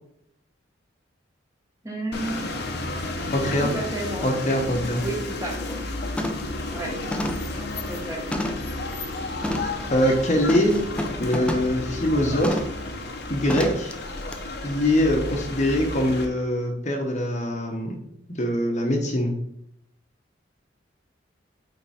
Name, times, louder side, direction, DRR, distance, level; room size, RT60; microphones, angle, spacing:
voice 1, 1.8-2.4 3.7-4.3 5.0-5.6 6.7-6.9 7.9-8.2, right 2 dB, 15° right, -1 dB, 1.5 m, -31 dB
sound 1, 2.1-16.3, left 2 dB, 60° left, 1.1 m, -32 dB
voice 2, 3.3-3.7 4.2-5.0 9.9-10.8 11.2-12.6 13.3-13.9 14.6-18.0 18.4-19.3, left 1 dB, 40° left, 2 dB, 1.1 m, -23 dB
sound 2, 4.9-5.2 5.5-5.8 6.2-6.6 7.1-8.8 9.4-9.8 10.5-11.8 12.4-12.8 13.5-13.9 14.3-14.4, equal, 5° left, 0.6 m, -30 dB
8.9 x 3.8 x 4.3 m, 0.74 s
head